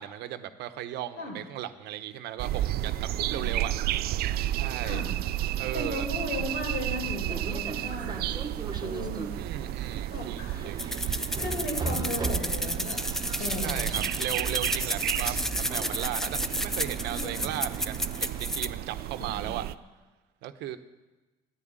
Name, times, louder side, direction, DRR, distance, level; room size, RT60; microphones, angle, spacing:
voice 1, 0.0-3.7 4.5-5.0 5.6-6.1 9.3-10.8 13.6-19.7 20.4-20.8, right 12 dB, 85° right, 10 dB, 0.9 m, -36 dB
sound 1, 2.4-19.7, right 13 dB, 65° right, 0.4 m, -32 dB
voice 2, 5.7-8.3 8.8-9.4 10.1-10.7 11.4-13.1 13.4-14.0 17.1-17.5, left 2 dB, 75° left, 0 dB, 5.2 m, -36 dB
sound 2, 7.3-18.4, right 3 dB, 25° right, 1.2 m, -39 dB
sound 3, 10.8-18.7, equal, ahead, 0.5 m, -32 dB
12.5 x 9.9 x 8.9 m, 1.2 s
cardioid pair, 110°, 17 cm